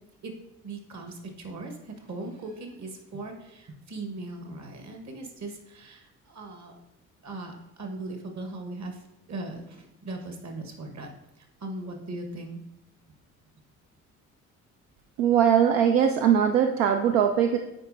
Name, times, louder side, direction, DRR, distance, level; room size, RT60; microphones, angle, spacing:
voice 1, 0.6-6.7 7.2-9.0 9.3-11.1 11.4-12.6, right 2 dB, 45° right, 4 dB, 1.4 m, -39 dB
voice 2, 15.2-17.6, right 8 dB, 70° right, 5 dB, 0.6 m, -21 dB
8.6 x 4.6 x 2.6 m, 0.87 s
figure-of-eight pair, 45°, 40 cm